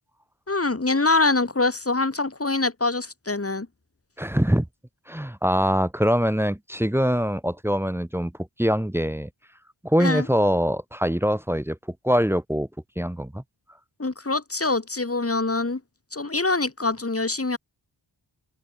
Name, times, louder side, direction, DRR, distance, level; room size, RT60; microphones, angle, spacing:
voice 1, 0.5-3.7 10.0-10.3 14.0-15.8 16.1-17.6, left 3 dB, 30° left, 1.7 m, -24 dB
voice 2, 4.2-4.7 5.1-8.3 8.6-9.3 9.8-11.8 12.0-12.7 13.0-13.4, equal, 5° right, 0.6 m, -23 dB
open air
wide cardioid pair, 45°, 46 cm